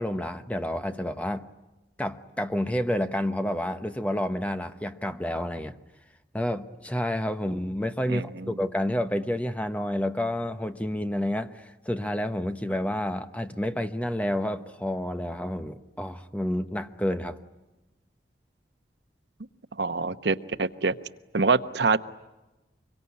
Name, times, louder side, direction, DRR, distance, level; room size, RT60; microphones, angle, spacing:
voice 1, 0.0-1.5 2.0-5.7 6.3-17.4, left 1 dB, 10° left, 1.0 m, -29 dB
voice 2, 19.8-20.9 21.3-22.0, right 4 dB, 80° right, 1.0 m, -24 dB
25.5 x 23.5 x 9.8 m
head